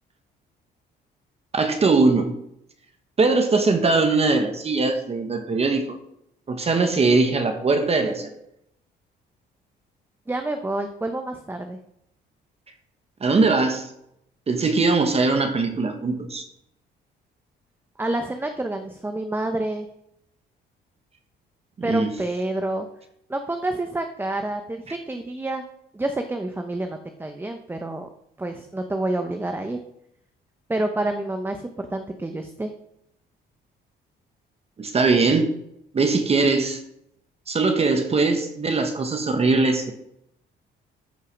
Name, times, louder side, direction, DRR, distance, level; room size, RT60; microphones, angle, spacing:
voice 1, 1.5-2.4 3.2-6.0 6.5-8.3 13.2-13.9 14.5-16.5 21.8-22.1 34.8-35.5 35.9-36.8 37.5-39.9, right 3 dB, 35° right, 6 dB, 1.4 m, -21 dB
voice 2, 10.3-11.8 18.0-19.9 21.8-22.9 23.3-25.6 25.9-28.1 28.4-29.8 30.7-32.7, right 2 dB, 10° right, 6 dB, 0.9 m, -28 dB
13.5 x 5.6 x 6.1 m, 0.77 s
cardioid pair, 110°, 19 cm